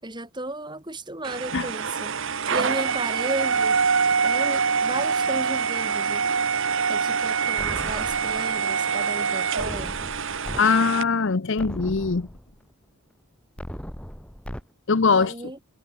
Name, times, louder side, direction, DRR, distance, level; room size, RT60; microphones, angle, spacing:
voice 1, 0.0-2.1 2.5-3.8 4.2-6.2 6.9-10.0 15.0-15.6, right 2 dB, 20° right, 5.2 m, -34 dB
sound 1, 1.2-11.0, right 6 dB, 55° right, 1.2 m, -25 dB
sound 2, 7.6-8.6 9.6-10.6 11.1-11.2 11.6-12.6 13.6-14.6, equal, 5° left, 3.0 m, -37 dB
voice 2, 10.6-12.3 14.9-15.3, left 5 dB, 55° left, 0.7 m, -21 dB
head